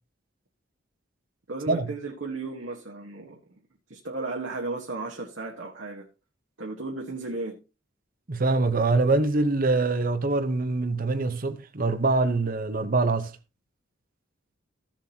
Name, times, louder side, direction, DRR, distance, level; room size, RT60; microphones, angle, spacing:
voice 1, 1.5-3.3 3.9-6.1 6.6-7.6, right 3 dB, 65° right, 1.4 m, -34 dB
voice 2, 8.3-13.3, right 3 dB, 45° right, 1.0 m, -24 dB
14.5 x 7.4 x 2.9 m
head